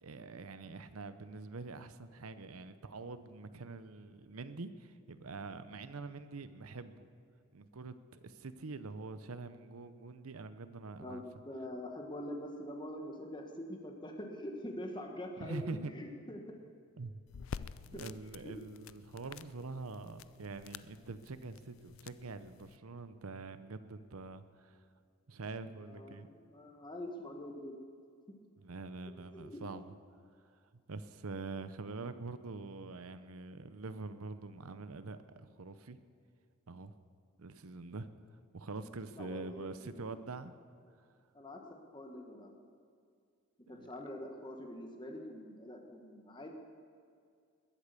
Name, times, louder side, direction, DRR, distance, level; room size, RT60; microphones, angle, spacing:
voice 1, 0.0-7.1 7.5-11.2 15.4-15.9 17.0-17.1 17.9-24.8 25.3-26.3 28.6-29.9 30.9-36.0 36.7-37.0 37.4-38.1 38.5-40.5 43.7-43.9, right 3 dB, 90° right, 12 dB, 0.8 m, -45 dB
voice 2, 11.0-16.6 17.9-18.0 18.4-18.5 25.9-27.8 29.3-29.6 39.2-40.1 41.3-41.6 41.9-42.6 43.6-46.5, left 1 dB, 20° left, 2 dB, 1.4 m, -45 dB
sound 1, 17.3-22.8, left 6 dB, 70° left, 0.4 m, -49 dB
20.5 x 8.4 x 6.9 m, 2.3 s
head